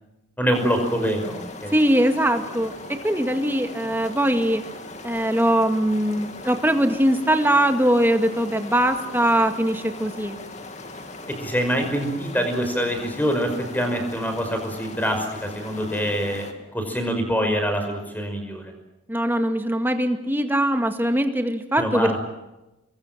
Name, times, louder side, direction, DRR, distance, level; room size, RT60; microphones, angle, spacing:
voice 1, 0.4-1.7 11.4-16.5 16.7-18.7 21.8-22.2, equal, 10° left, 5 dB, 5.5 m, -25 dB
sound 1, 0.5-16.5, left 2 dB, 35° left, 2.6 m, -39 dB
voice 2, 1.7-2.8 3.0-4.6 5.0-10.4 19.1-22.2, right 1 dB, 10° right, 6 dB, 2.0 m, -21 dB
27.0 x 22.5 x 7.5 m, 0.96 s
head